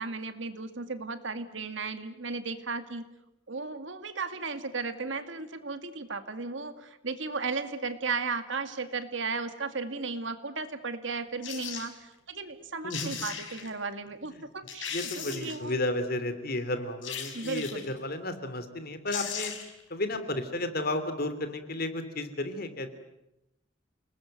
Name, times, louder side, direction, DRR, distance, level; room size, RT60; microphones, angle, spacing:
voice 1, 0.0-3.0 3.5-15.7 17.3-17.9, right 4 dB, 70° right, 10 dB, 2.2 m, -35 dB
sound 1, 11.4-11.9 12.6-12.7 12.9-13.7 14.2-14.3 14.7-15.7 17.0-17.9 18.8-18.9 19.1-19.8 20.1-20.2, left 7 dB, 80° left, 5.0 m, -37 dB
voice 2, 12.8-13.1 14.3-14.4 14.9-19.5 19.9-22.9, left 1 dB, 50° left, 10 dB, 3.1 m, -33 dB
29.5 x 20.5 x 9.1 m, 0.88 s
head